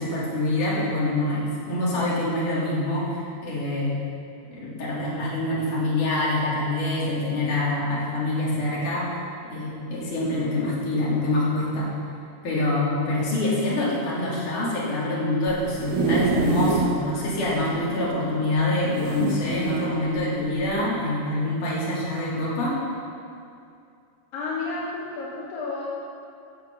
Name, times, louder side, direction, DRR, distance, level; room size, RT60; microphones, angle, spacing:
voice 1, 0.0-4.0 4.5-9.2 9.5-11.9 12.4-22.8, left 1 dB, 65° left, -7 dB, 4.2 m, -25 dB
sound 1, 15.5-17.0 17.5-17.6 17.7-17.8 19.0-19.9 20.6-20.8, right 4 dB, 90° right, 1.1 m, -25 dB
voice 2, 24.3-25.9, left 3 dB, 85° left, -5 dB, 3.0 m, -31 dB
15.0 x 6.9 x 5.9 m, 2.4 s
omnidirectional pair, 3.9 m